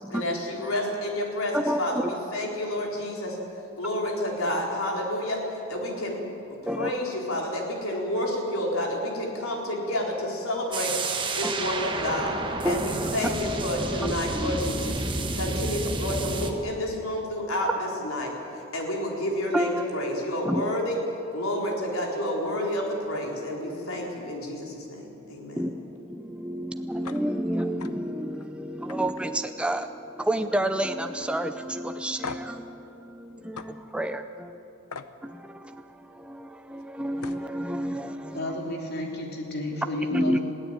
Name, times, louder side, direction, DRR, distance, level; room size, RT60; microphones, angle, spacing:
voice 1, 0.1-3.4 3.8-5.4 5.7-6.2 6.6-10.9 11.3-12.3 12.6-15.0 15.3-21.0 21.3-25.7, left 1 dB, 70° left, -1 dB, 4.2 m, -30 dB
voice 2, 1.5-2.0 6.7-6.9 11.4-11.5 12.6-12.8 14.5-14.6 19.5-19.9 20.5-20.6 25.6-34.6 35.2-35.8 36.1-38.5 40.1-40.4, equal, 5° right, 7 dB, 0.6 m, -30 dB
sound 1, 10.7-16.5, right 2 dB, 20° right, 1.4 m, -30 dB
sound 2, 27.0-27.2 27.6-27.9 28.3-28.5 28.9-30.1 30.4-30.8 31.2-31.3 32.2-32.6 33.6-33.7 34.9-35.1 36.8-36.9 37.2-37.5, left 5 dB, 90° left, 0.9 m, -40 dB
voice 3, 38.3-40.4, left 2 dB, 45° left, 1 dB, 3.1 m, -31 dB
21.0 x 16.5 x 8.9 m, 2.7 s
head